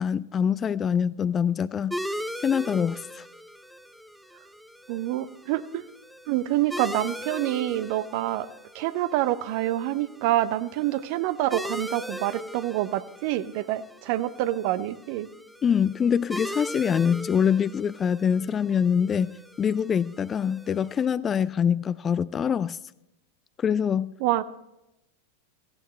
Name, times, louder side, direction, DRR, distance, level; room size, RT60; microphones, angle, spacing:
voice 1, 0.0-1.9 2.4-3.2 15.6-19.3 19.6-22.8 23.6-24.1, left 7 dB, 25° left, 0.4 m, -24 dB
sound 1, 1.9-21.1, equal, ahead, 0.8 m, -40 dB
voice 2, 4.9-5.8 6.3-8.5 8.7-15.3 24.2-24.4, right 14 dB, 45° right, 0.7 m, -27 dB
17.5 x 16.0 x 3.3 m
figure-of-eight pair, 90°, 0 cm